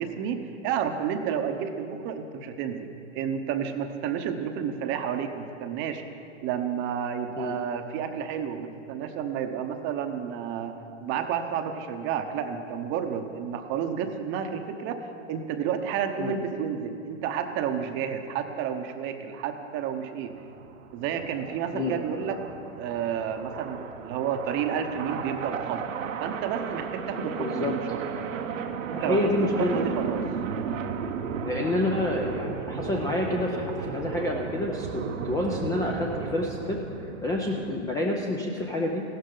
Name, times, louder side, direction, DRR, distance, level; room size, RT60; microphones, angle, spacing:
voice 1, 0.0-6.0 6.4-20.3 20.9-22.4 22.8-25.8 26.2-28.0 28.8-30.2, right 8 dB, 30° right, 7 dB, 0.8 m, -31 dB
sound 1, 20.3-37.8, right 6 dB, 90° right, 1.0 m, -35 dB
voice 2, 27.1-27.7 28.7-29.8 31.4-36.8 37.2-39.0, left 2 dB, 10° left, 0 dB, 0.4 m, -28 dB
15.5 x 12.5 x 3.8 m, 2.7 s
hypercardioid pair, 140°, 38 cm